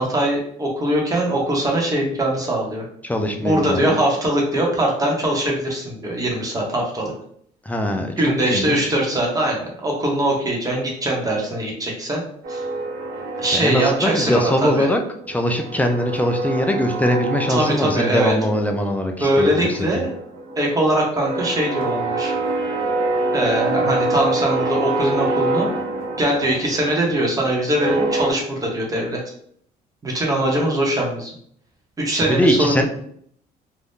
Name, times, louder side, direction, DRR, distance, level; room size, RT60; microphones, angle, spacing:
voice 1, 0.0-2.8 3.4-7.1 8.2-12.2 12.5-12.6 13.4-14.9 17.5-18.3 19.2-20.1 20.6-22.3 23.3-25.8 26.2-29.2 30.0-31.3 32.0-32.9, right 1 dB, 20° right, -1 dB, 1.0 m, -21 dB
voice 2, 3.0-4.0 7.7-8.1 8.4-8.9 13.5-15.0 15.3-20.0 32.2-32.9, equal, 10° left, 4 dB, 0.4 m, -21 dB
sound 1, 12.4-15.0 15.2-18.9 19.2-28.3, right 2 dB, 70° right, 1.0 m, -26 dB
2.7 x 2.3 x 3.5 m, 0.64 s
cardioid pair, 110°, 17 cm